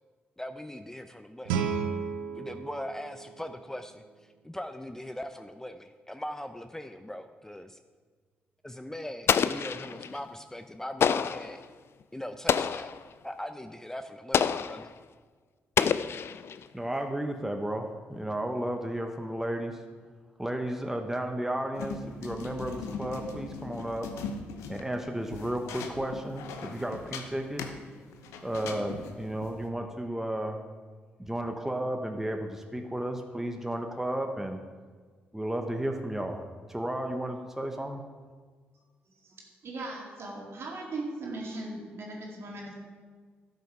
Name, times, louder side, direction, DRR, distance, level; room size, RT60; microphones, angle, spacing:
voice 1, 0.4-1.6 2.3-7.8 8.6-11.6 12.1-12.9 13.2-14.9, left 1 dB, 10° left, 8 dB, 0.6 m, -40 dB
Guitar, 1.5-4.2, right 6 dB, 90° right, 0.6 m, -34 dB
Explosion, 9.3-10.2 11.0-11.5 12.5-13.0 14.3-14.9 15.8-16.6, left 7 dB, 55° left, 0.4 m, -27 dB
voice 2, 16.7-19.8 20.4-24.1 24.7-27.6 28.4-30.6 31.2-34.6 35.3-36.4 36.7-38.0, right 1 dB, 5° right, 4 dB, 1.2 m, -33 dB
sound 1, 21.7-29.7, left 5 dB, 80° left, 0.8 m, -40 dB
voice 3, 39.6-42.7, right 2 dB, 60° right, -1 dB, 2.7 m, -38 dB
12.0 x 6.9 x 4.8 m, 1.5 s
hypercardioid pair, 45°, 5 cm